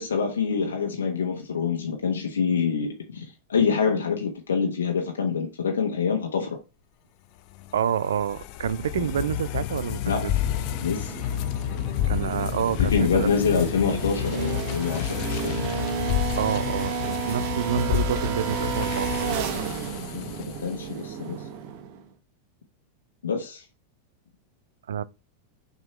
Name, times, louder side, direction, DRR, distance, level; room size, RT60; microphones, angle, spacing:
voice 1, 0.0-6.6 8.9-9.1 10.0-10.3 10.8-11.1 12.8-15.7 20.0-21.4 23.2-23.6, left 6 dB, 70° left, 1.1 m, -26 dB
sound 1, 7.5-20.9, left 12 dB, 45° left, 0.6 m, -30 dB
voice 2, 7.7-10.3 12.1-13.3 16.4-19.4 24.9-25.0, right 8 dB, 65° right, 0.4 m, -28 dB
sound 2, 10.3-22.1, right 8 dB, 45° right, 0.8 m, -32 dB
5.8 x 5.3 x 3.2 m
figure-of-eight pair, 90°, 0 cm